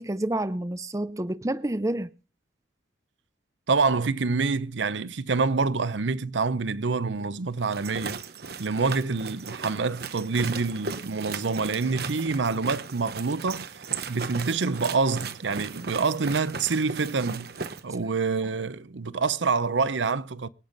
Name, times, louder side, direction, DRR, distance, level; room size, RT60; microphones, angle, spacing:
voice 1, 0.0-2.1, right 1 dB, 20° right, 0.6 m, -29 dB
voice 2, 3.7-8.2 8.6-13.7 14.1-17.5 17.8-20.5, right 4 dB, 80° right, 0.7 m, -26 dB
sound 1, 7.6-17.8, right 5 dB, 60° right, 1.0 m, -37 dB
24.0 x 8.9 x 3.9 m
head